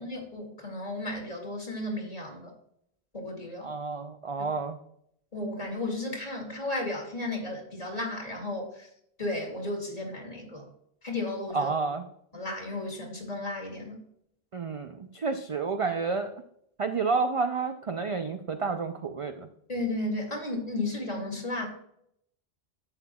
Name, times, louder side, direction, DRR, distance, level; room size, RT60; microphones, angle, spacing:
voice 1, 0.0-2.5 3.1-3.7 5.3-8.9 9.2-10.7 11.0-11.7 12.3-14.0 19.7-21.7, left 2 dB, 40° left, 0 dB, 2.3 m, -34 dB
voice 2, 3.6-4.8 11.5-12.0 14.5-16.3 16.8-19.5, right 4 dB, 45° right, 7 dB, 0.5 m, -30 dB
11.0 x 7.9 x 2.3 m, 0.71 s
omnidirectional pair, 1.0 m